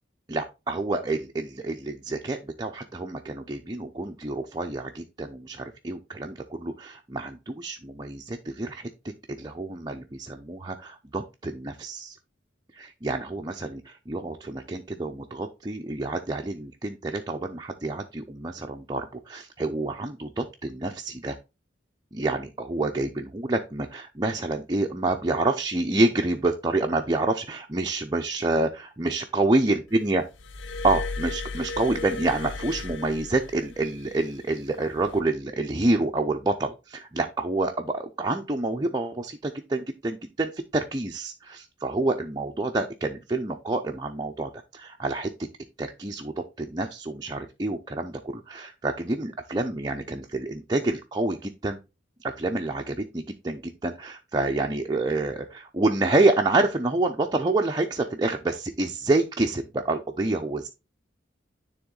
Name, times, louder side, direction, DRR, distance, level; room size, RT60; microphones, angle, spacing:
voice 1, 0.3-8.9 9.3-12.2 12.7-21.4 22.1-30.2 30.8-45.3 45.8-51.8 52.2-60.7, right 2 dB, 20° right, 2 dB, 0.5 m, -28 dB
Glass, 30.4-34.0 35.0-35.2, left 3 dB, 80° left, 0.7 m, -35 dB
9.9 x 3.5 x 3.8 m, 0.27 s
head